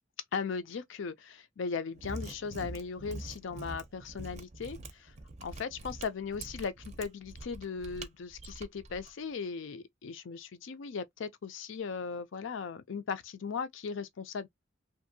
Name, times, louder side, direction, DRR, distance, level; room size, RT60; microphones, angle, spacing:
voice 1, 0.3-5.1 5.4-14.5, left 5 dB, 70° left, 0.5 m, -38 dB
Mechanisms, 1.9-9.1, right 2 dB, 35° right, 0.5 m, -45 dB
2.7 x 2.5 x 2.6 m
head